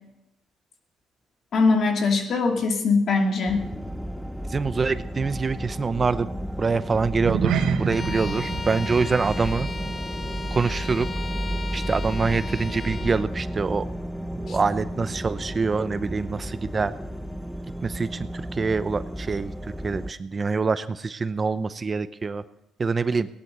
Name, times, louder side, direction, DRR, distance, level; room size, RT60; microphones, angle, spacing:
voice 1, 1.5-3.7 14.5-14.6, left 4 dB, 60° left, 4 dB, 2.4 m, -22 dB
sound 1, 3.5-20.1, equal, 5° left, 0.9 m, -32 dB
voice 2, 4.5-6.3 6.6-9.7 10.5-11.1 11.7-13.8 14.4-16.9 17.8-19.5 19.8-22.4 22.8-23.3, right 4 dB, 35° right, 13 dB, 0.7 m, -25 dB
sound 2, 7.1-11.8 12.0-12.3 12.8-12.9, right 7 dB, 90° right, 1.2 m, -31 dB
Bowed string instrument, 7.9-13.3, left 4 dB, 35° left, 1.7 m, -37 dB
18.0 x 11.0 x 6.7 m, 0.86 s
cardioid pair, 90°, 0 cm